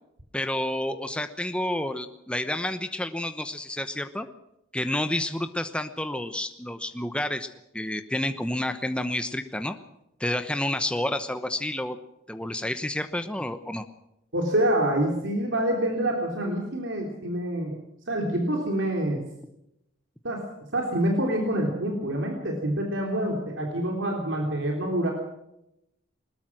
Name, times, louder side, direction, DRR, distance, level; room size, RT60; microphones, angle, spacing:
voice 1, 0.3-4.3 4.7-7.5 7.7-9.8 10.2-12.0 12.3-13.8, left 1 dB, 5° left, 8 dB, 0.9 m, -29 dB
voice 2, 14.3-17.8 18.1-19.2 20.2-20.5 20.7-25.1, right 1 dB, 65° right, 1 dB, 3.5 m, -26 dB
21.0 x 20.5 x 6.2 m, 0.84 s
head